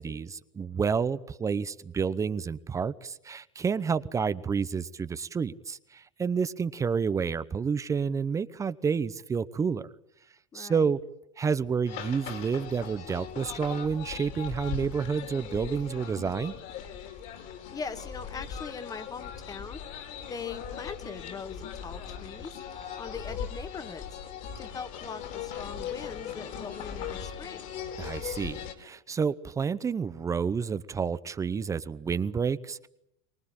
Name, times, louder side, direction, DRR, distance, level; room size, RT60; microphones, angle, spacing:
voice 1, 0.0-9.9 10.5-11.0 11.4-16.5 28.0-32.9, right 6 dB, 20° right, 0.9 m, -29 dB
voice 2, 10.5-10.9 17.7-22.5 23.0-24.1 24.6-27.7, left 5 dB, 20° left, 1.8 m, -41 dB
sound 1, 11.9-28.7, left 8 dB, 50° left, 4.1 m, -39 dB
24.0 x 19.5 x 8.8 m
hypercardioid pair, 115°, 17 cm